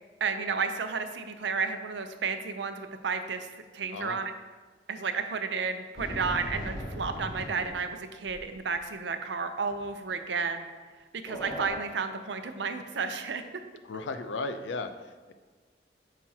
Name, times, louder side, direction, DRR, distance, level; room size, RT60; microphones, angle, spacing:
voice 1, 0.2-3.5 3.7-4.3 4.9-10.7 11.2-13.4, right 5 dB, 75° right, 8 dB, 0.6 m, -32 dB
sound 1, 6.0-7.9 8.3-8.4 8.7-8.8 9.7-9.8 11.3-11.7, equal, 25° left, 1.5 m, -38 dB
voice 2, 13.8-15.3, left 3 dB, 85° left, 8 dB, 0.6 m, -35 dB
8.6 x 5.9 x 2.9 m, 1.4 s
head